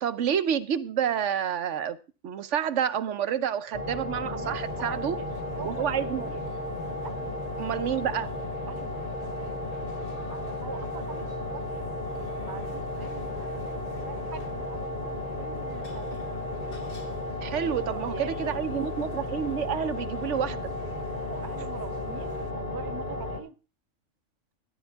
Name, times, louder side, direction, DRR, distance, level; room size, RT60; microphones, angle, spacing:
voice 1, 0.0-2.0 2.2-5.2 5.6-6.3 7.6-8.3 17.4-20.6, right 8 dB, 70° right, 1.0 m, -29 dB
Bitcrush Drone, 3.7-23.4, left 2 dB, 30° left, 1.6 m, -34 dB
voice 2, 4.2-5.3 5.6-6.4 7.0-7.4 8.7-9.0 10.3-11.6 12.4-16.2 17.6-18.8 21.1-23.6, right 6 dB, 30° right, 0.4 m, -43 dB
sound 1, 4.6-22.5, left 4 dB, 45° left, 1.4 m, -51 dB
12.5 x 11.0 x 3.5 m
omnidirectional pair, 1.3 m